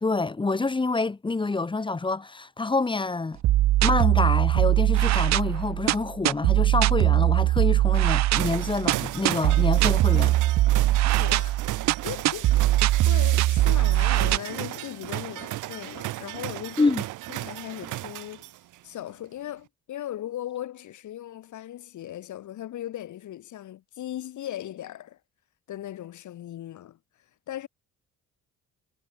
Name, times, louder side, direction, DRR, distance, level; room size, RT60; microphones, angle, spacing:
voice 1, 0.0-3.4 3.8-10.4 16.8-17.0, left 3 dB, 15° left, 0.8 m, -27 dB
sound 1, 3.4-14.4, right 15 dB, 65° right, 0.5 m, -21 dB
sound 2, 8.3-18.7, right 16 dB, 85° right, 1.0 m, -35 dB
voice 2, 11.2-11.6 12.0-16.9 17.3-18.5 18.8-25.2 25.7-27.0 27.5-27.7, left 12 dB, 75° left, 3.1 m, -38 dB
cardioid pair, 90°, 30 cm